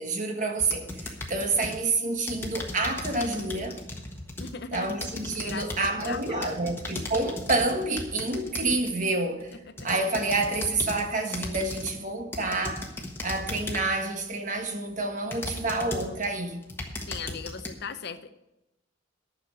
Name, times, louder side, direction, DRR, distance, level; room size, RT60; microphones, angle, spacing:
voice 1, 0.0-3.8 4.7-9.5 9.8-12.9 13.2-16.6, right 2 dB, 35° right, 1.4 m, -28 dB
sound 1, 0.6-1.8 2.3-9.0 9.5-11.0 11.3-12.0 12.3-14.0 14.6-14.7 15.3-16.3 16.6-17.7, left 2 dB, 10° left, 1.4 m, -37 dB
voice 2, 4.4-5.1 5.3-6.7 9.7-9.9 17.1-18.3, left 5 dB, 50° left, 0.8 m, -39 dB
10.5 x 6.6 x 9.1 m
head